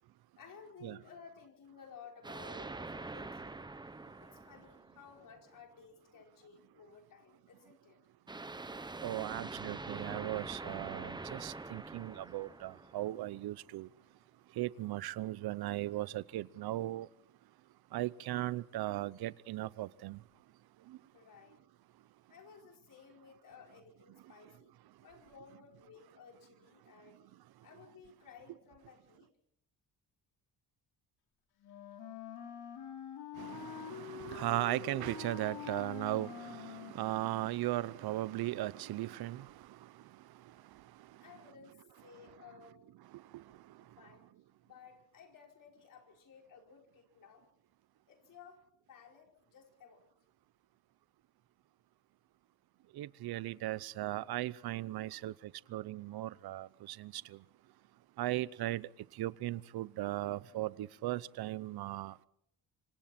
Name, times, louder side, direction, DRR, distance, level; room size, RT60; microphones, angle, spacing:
voice 1, 0.4-3.7 4.2-8.0 21.1-21.6 22.3-27.2 27.6-29.3 41.2-42.8 43.8-44.2 44.7-47.4 48.1-50.0, left 6 dB, 55° left, 5.0 m, -56 dB
sound 1, 2.2-5.4 8.3-13.4, right 3 dB, 10° right, 0.9 m, -45 dB
voice 2, 9.0-13.9 14.6-17.1 17.9-20.2 33.4-39.4 53.0-55.3 55.7-57.2 58.2-58.9 59.2-62.3, right 15 dB, 70° right, 0.8 m, -37 dB
Wind instrument woodwind instrument, 31.6-37.5, left 9 dB, 70° left, 4.4 m, -46 dB
26.5 x 26.0 x 4.4 m
cardioid pair, 145°, 39 cm